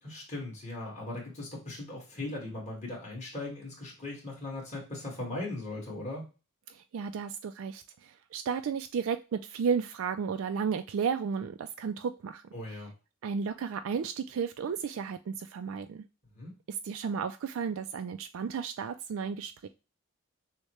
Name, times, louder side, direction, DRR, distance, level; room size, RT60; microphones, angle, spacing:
voice 1, 0.0-6.3 12.5-12.9 16.3-16.6, left 2 dB, 30° left, -3 dB, 1.8 m, -39 dB
voice 2, 6.7-12.4 12.7-12.8 13.2-16.0 16.7-19.7, right 6 dB, 65° right, 8 dB, 0.3 m, -33 dB
6.4 x 2.2 x 3.1 m, 0.31 s
head